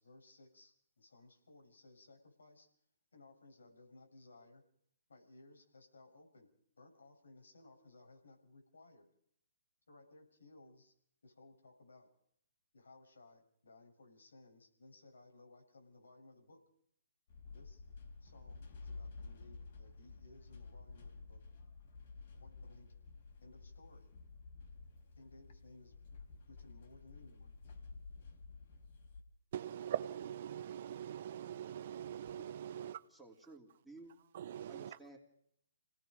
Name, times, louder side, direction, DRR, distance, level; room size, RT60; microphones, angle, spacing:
voice 1, 0.0-2.7 3.1-4.6 5.1-6.5 6.8-9.1 9.9-10.9 11.2-12.1 12.7-16.6 17.5-17.8 18.2-21.4 22.4-22.9 23.4-24.1 25.1-25.9 26.5-27.5, left 2 dB, 80° left, 6.4 m, -60 dB
sound 1, 17.3-29.2, left 4 dB, 50° left, 4.3 m, -52 dB
voice 2, 29.5-33.0 34.3-35.0, right 10 dB, 50° right, 1.1 m, -42 dB
voice 3, 32.7-34.2 34.7-35.2, right 3 dB, ahead, 3.1 m, -56 dB
28.5 x 18.5 x 5.3 m
hypercardioid pair, 140°, 0 cm